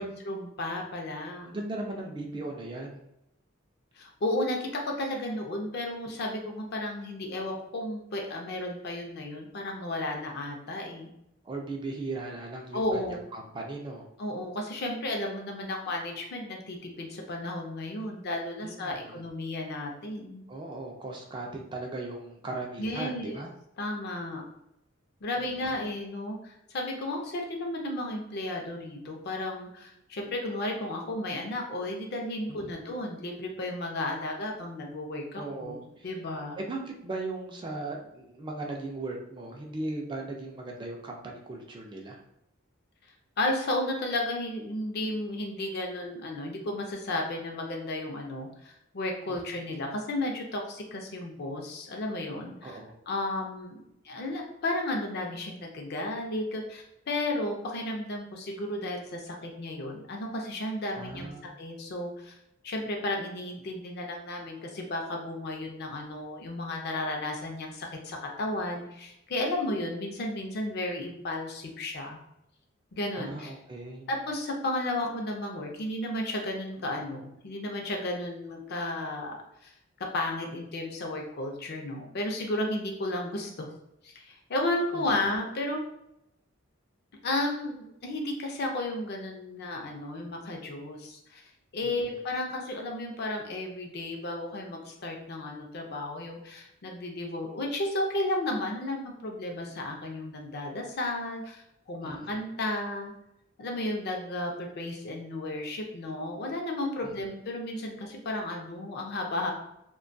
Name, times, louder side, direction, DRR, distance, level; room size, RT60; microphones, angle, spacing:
voice 1, 0.0-1.5 4.0-11.1 12.7-13.2 14.2-20.5 22.8-23.4 23.8-24.4 25.2-35.8 36.0-36.6 43.4-52.8 53.1-53.8 54.0-61.3 61.6-62.4 62.6-72.2 72.9-73.5 74.1-79.4 79.6-79.7 80.1-83.7 84.0-85.8 87.2-91.4 91.7-103.1 103.6-109.5, left 1 dB, 55° left, 1 dB, 0.5 m, -33 dB
voice 2, 1.4-3.1 11.4-14.1 18.6-19.2 20.5-23.5 32.5-32.8 35.3-36.1 36.6-42.2 49.3-49.4 52.6-52.9 60.9-61.5 73.2-74.1 84.9-85.1 91.8-92.2 102.0-102.4 107.0-107.3, right 2 dB, 25° right, 1 dB, 0.3 m, -38 dB
2.2 x 2.1 x 2.5 m, 0.80 s
head